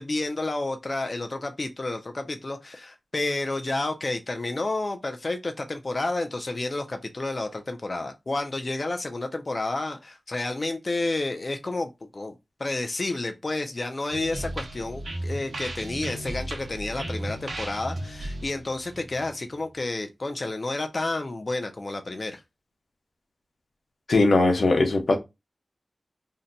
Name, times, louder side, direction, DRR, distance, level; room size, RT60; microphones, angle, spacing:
voice 1, 0.0-12.3 12.6-22.4, left 2 dB, 45° left, 0.4 m, -30 dB
sound 1, 14.1-19.7, right 1 dB, 75° right, 0.7 m, -35 dB
voice 2, 24.1-25.2, left 2 dB, 85° left, 0.7 m, -20 dB
2.7 x 2.1 x 3.8 m
wide cardioid pair, 90°, 0 cm